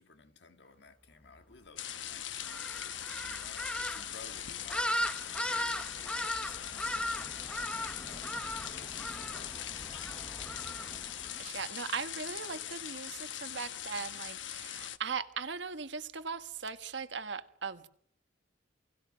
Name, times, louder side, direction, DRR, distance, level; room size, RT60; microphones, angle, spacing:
voice 1, 0.0-8.3 8.6-9.9, left 4 dB, 60° left, 1.7 m, -56 dB
sound 1, 1.8-15.0, left 11 dB, 75° left, 1.0 m, -41 dB
sound 2, 2.4-11.5, left 1 dB, 5° left, 0.9 m, -38 dB
voice 2, 11.4-17.9, right 5 dB, 70° right, 1.5 m, -39 dB
29.0 x 20.0 x 5.3 m
head